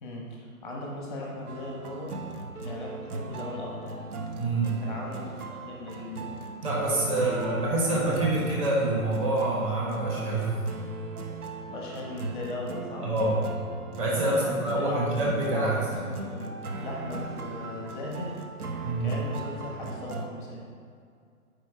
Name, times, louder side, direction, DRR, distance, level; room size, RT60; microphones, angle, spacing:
voice 1, 0.0-2.1 2.6-4.0 4.8-6.3 7.0-7.7 11.7-13.1 14.3-18.4 19.0-20.7, left 1 dB, ahead, -3 dB, 0.8 m, -38 dB
sound 1, 1.5-20.3, right 3 dB, 80° right, 1.2 m, -38 dB
voice 2, 4.4-4.7 6.6-10.7 13.0-13.4 14.0-16.0 18.8-19.1, right 2 dB, 25° right, -4 dB, 1.3 m, -26 dB
8.5 x 5.1 x 4.8 m, 2.2 s
hypercardioid pair, 165°, 44 cm